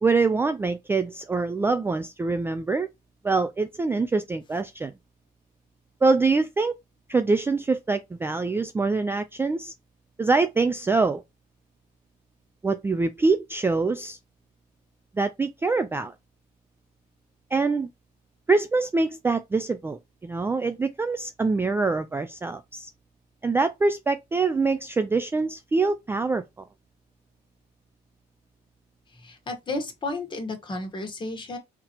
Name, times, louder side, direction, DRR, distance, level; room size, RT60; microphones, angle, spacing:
voice 1, 0.0-2.9 3.2-4.9 6.0-6.7 7.1-9.7 10.2-11.2 12.6-14.2 15.1-16.1 17.5-17.9 18.5-22.9 23.4-26.4, right 3 dB, 15° right, 0.3 m, -24 dB
voice 2, 29.2-31.6, left 2 dB, 30° left, 1.6 m, -32 dB
3.9 x 2.9 x 2.9 m
cardioid pair, 110°, 17 cm